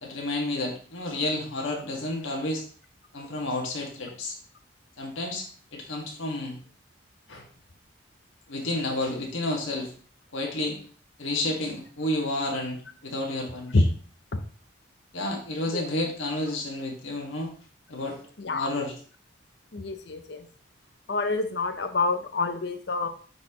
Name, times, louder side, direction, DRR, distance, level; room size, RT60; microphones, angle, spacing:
voice 1, 0.0-2.6 3.1-4.3 5.0-5.4 5.7-6.6 7.3-7.5 8.5-9.9 10.3-10.8 11.2-13.8 15.1-17.5 17.9-18.2 18.5-18.9, left 1 dB, 85° left, 0 dB, 1.6 m, -30 dB
voice 2, 18.4-18.7 19.7-20.5 21.1-23.1, left 3 dB, 60° left, 9 dB, 0.7 m, -27 dB
8.8 x 4.2 x 2.9 m, 0.42 s
head